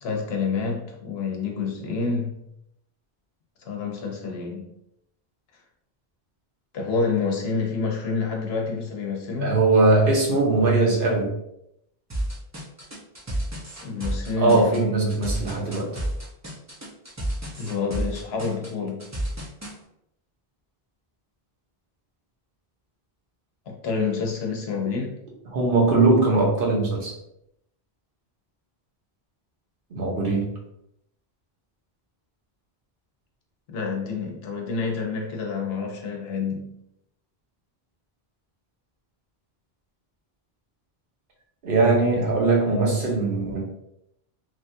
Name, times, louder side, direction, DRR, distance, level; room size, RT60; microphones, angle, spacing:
voice 1, 0.0-2.4 3.6-4.7 6.7-9.6 13.8-15.0 17.6-19.1 23.7-25.2 33.7-36.7 42.1-42.2, left 5 dB, 80° left, 1 dB, 0.9 m, -28 dB
voice 2, 9.4-11.3 14.4-15.9 25.5-27.1 29.9-30.5 41.6-43.6, right 3 dB, 60° right, -2 dB, 1.0 m, -20 dB
sound 1, 12.1-19.7, right 1 dB, 20° right, 0.5 m, -31 dB
3.1 x 2.3 x 2.6 m, 0.79 s
omnidirectional pair, 1.0 m